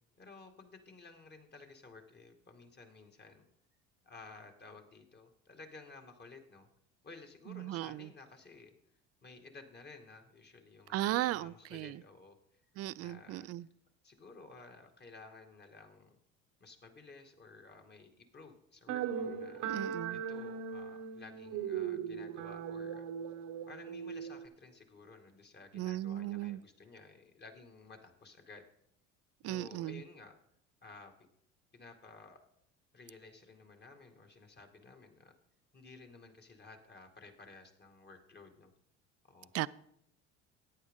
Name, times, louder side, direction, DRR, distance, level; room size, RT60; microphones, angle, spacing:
voice 1, 0.2-3.5 4.0-6.7 7.0-8.7 9.2-12.4 13.0-13.5 14.0-16.2 16.6-19.7 20.1-23.1 23.7-28.6 29.4-30.4 30.8-31.1 31.7-32.4 32.9-35.4 35.7-38.7 39.3-39.5, left 3 dB, 30° left, 2.0 m, -54 dB
voice 2, 7.5-8.1 10.9-12.0 12.8-13.6 19.6-20.2 25.7-26.6 29.4-30.0 39.5-39.7, right 15 dB, 45° right, 0.4 m, -36 dB
sound 1, 18.9-24.4, right 8 dB, 70° right, 1.1 m, -39 dB
14.5 x 9.2 x 3.7 m
hypercardioid pair, 75°, 35 cm